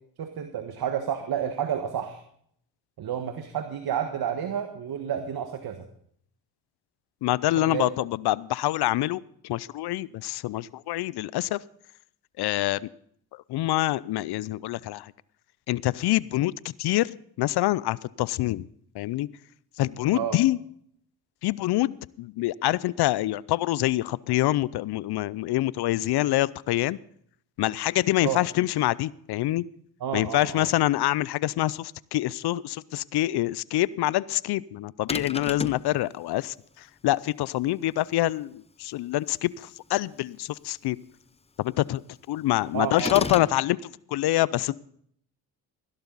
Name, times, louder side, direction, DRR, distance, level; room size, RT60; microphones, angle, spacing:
voice 1, 0.2-2.2 3.0-5.8 7.6-7.8 20.1-20.4 28.2-28.4 30.0-30.7 42.7-43.4, right 9 dB, 55° right, 7 dB, 1.5 m, -30 dB
voice 2, 7.2-11.6 12.4-12.9 13.5-15.1 15.7-16.5 16.8-18.7 18.9-19.3 19.8-20.6 21.4-27.0 27.6-29.6 30.1-41.0 41.6-42.0 42.3-44.8, left 16 dB, 65° left, 22 dB, 0.6 m, -26 dB
sound 1, 35.1-35.9 43.0-43.6, left 4 dB, 15° left, 0.6 m, -31 dB
16.0 x 12.0 x 4.0 m, 0.65 s
supercardioid pair, 70°, 43 cm